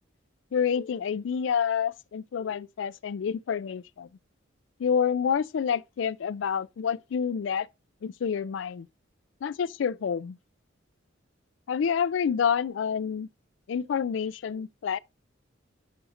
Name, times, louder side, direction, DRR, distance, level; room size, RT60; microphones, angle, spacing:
voice 1, 0.5-4.1 4.8-7.7 8.0-8.9 9.4-10.4 11.7-13.3 13.7-15.0, left 7 dB, 65° left, 0.3 m, -28 dB
11.0 x 4.2 x 2.5 m
head